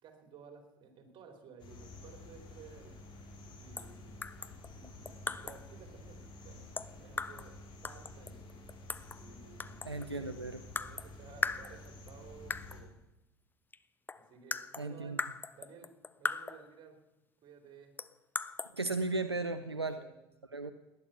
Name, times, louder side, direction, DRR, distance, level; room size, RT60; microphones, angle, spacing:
voice 1, 0.0-3.0 3.6-4.2 4.7-8.4 9.2-10.3 10.8-12.9 14.1-15.2 15.5-15.9 16.2-17.0 17.4-17.9 19.7-20.2, right 6 dB, 35° right, 6 dB, 3.4 m, -55 dB
sound 1, 1.6-12.8, left 2 dB, 40° left, 4.0 m, -51 dB
sound 2, 3.8-4.0 4.2-5.7 6.8-7.5 7.8-9.2 9.6-10.2 10.8-11.1 11.4-12.1 12.5-12.8 13.7-13.8 14.1-16.7 18.0-18.7, left 4 dB, 15° left, 0.7 m, -39 dB
voice 2, 9.8-10.6 14.8-15.2 18.7-20.0 20.5-20.7, right 3 dB, 90° right, 10 dB, 0.6 m, -35 dB
18.5 x 10.5 x 6.8 m, 1.0 s
figure-of-eight pair, 70°, 13 cm